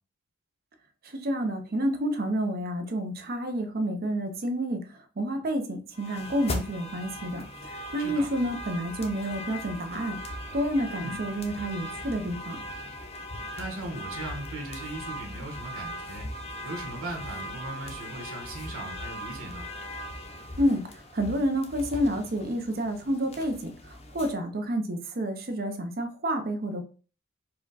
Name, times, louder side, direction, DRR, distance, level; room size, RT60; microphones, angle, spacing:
voice 1, 1.2-4.8 5.2-10.2 10.5-12.6 20.6-20.8 21.1-23.7 24.1-26.8, equal, 45° right, 0.7 m, -29 dB
sound 1, 5.9-24.3, left 1 dB, 30° left, 0.6 m, -39 dB
voice 2, 8.0-8.3 11.0-11.2 13.5-16.3 16.6-19.7, right 2 dB, 85° right, 1.3 m, -38 dB
4.8 x 2.3 x 4.0 m
head